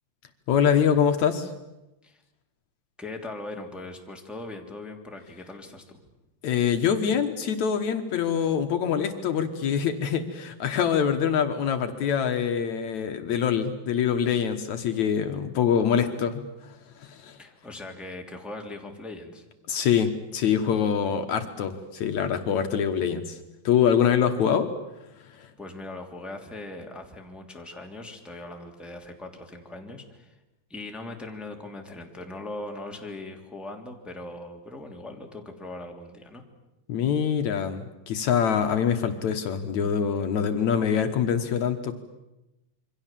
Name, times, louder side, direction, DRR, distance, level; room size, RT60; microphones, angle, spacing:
voice 1, 0.5-1.5 6.4-17.4 19.7-23.4 23.6-24.7 25.2-25.5 36.9-41.9, left 8 dB, 65° left, 7 dB, 2.5 m, -25 dB
voice 2, 3.0-6.0 17.4-19.4 25.6-30.4 30.7-36.4, left 2 dB, ahead, 2 dB, 2.5 m, -40 dB
27.5 x 24.0 x 7.4 m, 0.96 s
omnidirectional pair, 3.6 m